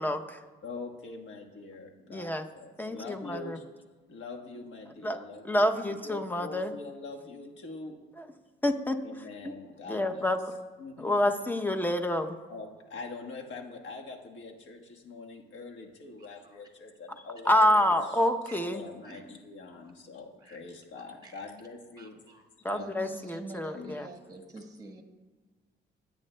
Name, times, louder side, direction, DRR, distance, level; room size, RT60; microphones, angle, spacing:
voice 1, 0.0-0.4 2.1-2.5 2.8-3.6 5.0-6.7 8.2-8.3 8.6-9.5 9.9-10.5 11.0-12.4 17.4-18.8 22.6-24.1, left 1 dB, 10° left, 7 dB, 0.7 m, -28 dB
voice 2, 0.6-3.6 4.1-8.0 9.0-10.2 10.8-11.1 12.5-18.1 18.7-22.2 22.7-22.9 23.7-23.9, left 3 dB, 70° left, 1 dB, 1.4 m, -44 dB
voice 3, 16.2-16.6 17.6-17.7 18.5-18.6 19.0-19.2 20.4-20.6 21.2-21.4 22.0-22.4 22.8-25.0, right 2 dB, 20° right, 3 dB, 1.4 m, -47 dB
17.0 x 8.4 x 2.2 m, 1.3 s
cardioid pair, 90°, 20 cm